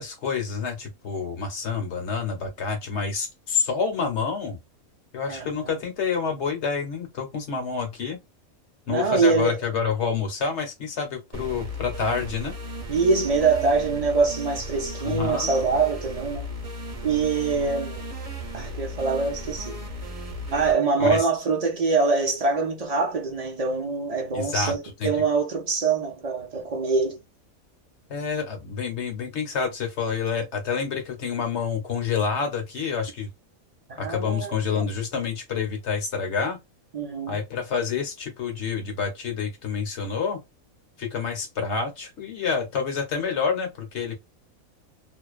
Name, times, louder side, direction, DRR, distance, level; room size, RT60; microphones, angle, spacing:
voice 1, 0.0-4.6 5.1-8.2 8.9-12.6 15.0-15.5 21.0-21.2 24.3-25.1 28.1-33.3 34.0-36.6 37.3-40.4 41.0-44.2, left 5 dB, 55° left, 1.0 m, -28 dB
voice 2, 5.3-5.7 8.9-9.6 12.9-16.5 17.0-18.1 18.5-19.8 20.5-27.2 33.9-35.0 36.9-37.4, right 4 dB, 65° right, 0.3 m, -24 dB
sound 1, 11.3-20.7, equal, 30° right, 0.7 m, -35 dB
2.5 x 2.1 x 2.3 m
omnidirectional pair, 1.5 m